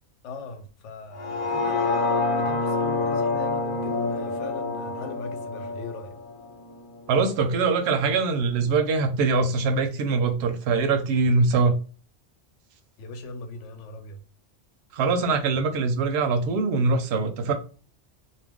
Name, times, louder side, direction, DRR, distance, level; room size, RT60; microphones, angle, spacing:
voice 1, 0.2-1.8 2.4-6.1 13.0-14.2, left 2 dB, 80° left, 0.9 m, -40 dB
sound 1, 1.1-7.3 7.7-7.8, left 3 dB, 50° left, 0.5 m, -27 dB
voice 2, 7.1-11.8 14.9-17.5, right 4 dB, 70° right, 0.8 m, -23 dB
2.4 x 2.2 x 3.4 m
omnidirectional pair, 1.2 m